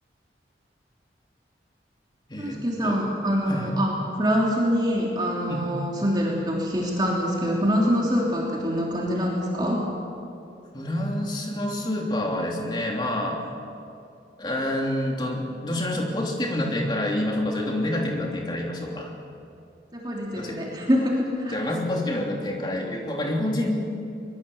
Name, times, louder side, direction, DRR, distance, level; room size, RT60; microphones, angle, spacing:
voice 1, 2.4-9.8 19.9-21.6, equal, 25° right, -3 dB, 3.2 m, -25 dB
voice 2, 10.7-13.4 14.4-19.1 20.4-20.6 21.5-23.7, left 1 dB, 25° left, 0 dB, 3.2 m, -27 dB
24.0 x 21.5 x 7.2 m, 2.5 s
head